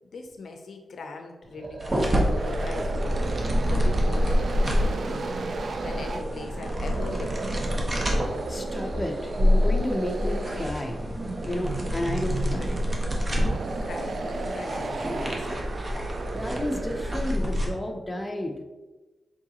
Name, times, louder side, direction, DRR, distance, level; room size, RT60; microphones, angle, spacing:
voice 1, 0.1-3.3 3.7-5.4 5.8-7.7 13.6-15.8, left 3 dB, 70° left, 4 dB, 0.5 m, -40 dB
sound 1, 1.4-17.5, right 3 dB, 60° right, 0.3 m, -34 dB
sound 2, 1.8-17.7, equal, 35° right, 0.9 m, -27 dB
voice 2, 8.5-11.0 11.4-12.7 16.3-18.6, left 1 dB, 15° left, 2 dB, 0.7 m, -31 dB
4.8 x 3.6 x 2.9 m, 1.2 s
cardioid pair, 70°, 0 cm